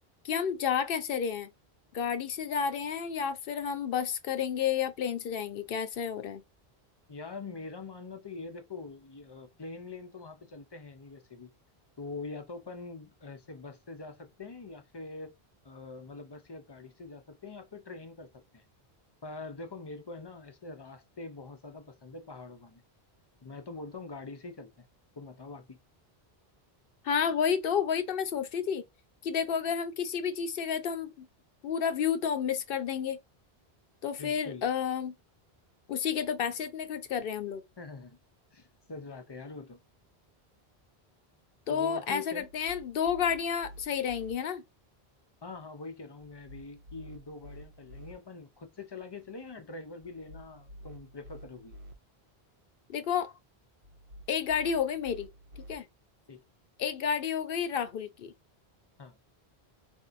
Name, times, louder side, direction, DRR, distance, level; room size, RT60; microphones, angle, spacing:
voice 1, 0.2-1.5 1.9-6.4 27.0-28.8 29.2-31.3 31.6-33.2 34.0-35.1 35.9-37.6 41.7-44.6 52.9-53.3 54.3-55.3 55.7-55.9 56.8-58.3, left 7 dB, 65° left, 0.7 m, -31 dB
voice 2, 7.1-11.5 12.0-15.4 15.6-18.6 19.2-22.8 23.4-24.7 25.2-25.8 34.2-34.7 37.8-38.2 38.5-39.8 41.7-42.5 45.4-51.7 56.3-56.4 59.0-59.2, left 3 dB, 35° left, 0.4 m, -44 dB
sound 1, 42.4-44.3 46.2-48.1 50.0-51.9 53.8-55.7, equal, 65° right, 0.8 m, -50 dB
4.2 x 2.7 x 2.4 m
omnidirectional pair, 1.1 m